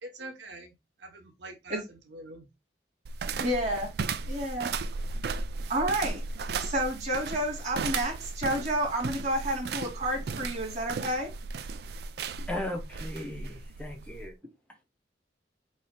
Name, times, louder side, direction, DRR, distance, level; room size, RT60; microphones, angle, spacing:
voice 1, 0.0-2.5, right 2 dB, 75° right, 0.9 m, -45 dB
sound 1, 3.1-14.3, right 4 dB, 60° right, 0.4 m, -35 dB
voice 2, 3.4-3.9 4.2-4.7 5.7-6.2 6.6-11.3, right 1 dB, 40° right, 2.3 m, -30 dB
voice 3, 12.5-14.3, left 1 dB, 5° left, 0.7 m, -37 dB
4.8 x 4.1 x 2.2 m
head